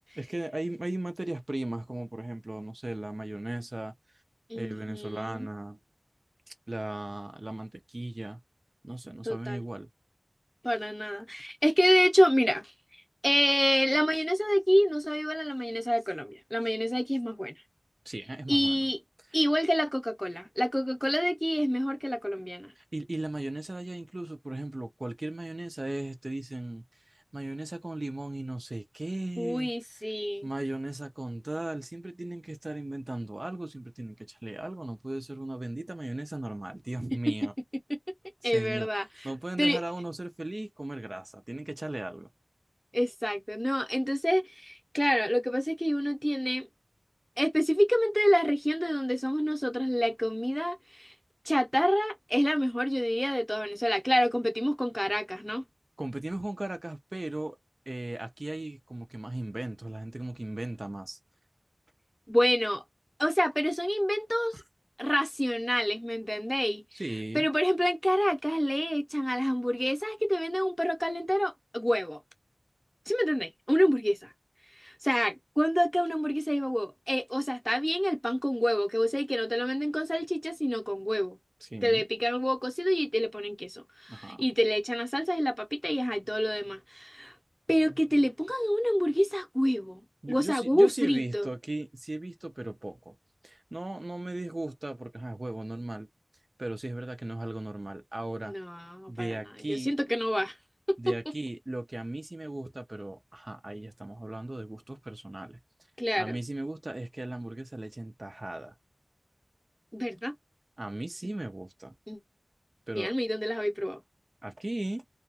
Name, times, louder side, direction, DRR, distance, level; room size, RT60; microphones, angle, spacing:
voice 1, 0.2-3.9 4.5-5.8 6.7-8.4 8.8-9.9 18.1-18.8 22.8-30.1 30.4-37.5 38.4-38.9 39.2-42.3 56.0-57.6 57.9-61.2 64.5-64.6 66.9-67.4 81.6-82.0 84.1-84.5 90.2-93.2 93.4-96.1 96.6-98.5 99.1-99.9 101.0-105.6 106.2-108.7 110.8-111.9 112.9-113.1 114.4-115.0, right 1 dB, 45° right, 0.4 m, -37 dB
voice 2, 4.5-5.5 9.2-9.6 10.6-12.7 13.2-17.6 18.5-19.0 19.3-22.7 29.4-30.5 38.4-39.3 39.6-39.8 42.9-46.7 47.4-51.1 51.5-55.6 62.3-62.8 63.2-64.6 65.0-66.8 67.3-72.2 73.1-74.3 74.8-81.4 81.8-87.4 87.7-91.5 98.4-100.5 101.1-101.2 106.0-106.4 109.9-110.3 111.2-111.3 112.1-112.2 113.0-114.0, equal, 5° left, 0.7 m, -27 dB
2.4 x 2.2 x 2.7 m
wide cardioid pair, 50°, 0 cm